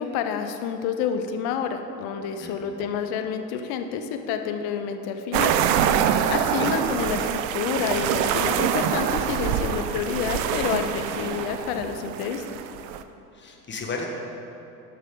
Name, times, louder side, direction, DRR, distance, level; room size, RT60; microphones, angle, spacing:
voice 1, 0.0-5.5 6.3-12.4, left 7 dB, 50° left, 7 dB, 0.8 m, -29 dB
sound 1, 5.3-13.0, right 9 dB, 55° right, 0.6 m, -25 dB
voice 2, 6.4-6.8 13.3-14.1, left 4 dB, 25° left, 0 dB, 1.5 m, -34 dB
12.0 x 5.8 x 3.8 m, 2.8 s
figure-of-eight pair, 70°, 48 cm